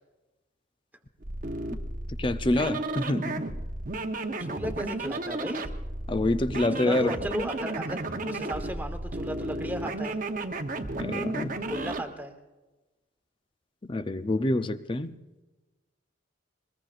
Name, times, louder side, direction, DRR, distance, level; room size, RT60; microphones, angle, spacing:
sound 1, 1.2-12.0, right 2 dB, 45° right, 0.8 m, -33 dB
voice 1, 2.2-3.4 6.1-7.2 11.0-11.6 13.8-15.1, left 1 dB, 25° left, 0.5 m, -27 dB
voice 2, 4.4-5.7 6.7-10.2 11.7-12.3, equal, 10° right, 1.2 m, -35 dB
21.5 x 21.0 x 2.5 m
head